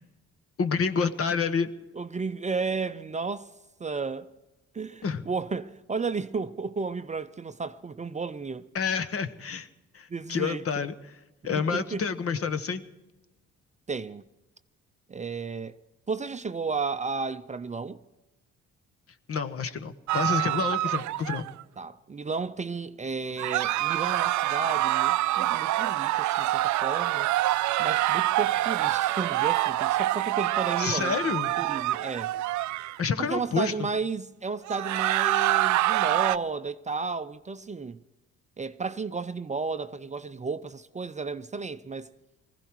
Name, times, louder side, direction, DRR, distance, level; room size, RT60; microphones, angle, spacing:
voice 1, 0.6-1.7 5.0-5.2 8.7-9.7 9.9-12.8 19.3-21.5 30.8-31.6 33.0-33.7, left 5 dB, 50° left, 1.2 m, -29 dB
voice 2, 2.0-3.5 3.8-4.3 4.7-8.7 10.1-10.8 11.5-12.0 13.9-14.2 15.1-15.8 16.1-18.0 21.8-27.3 27.8-31.2 31.6-32.3 33.3-38.0 38.6-42.1, right 4 dB, 25° right, 0.5 m, -33 dB
sound 1, 20.1-21.6 23.4-33.0 34.7-36.4, right 15 dB, 70° right, 0.5 m, -26 dB
20.0 x 15.5 x 4.6 m
cardioid pair, 90°, 30 cm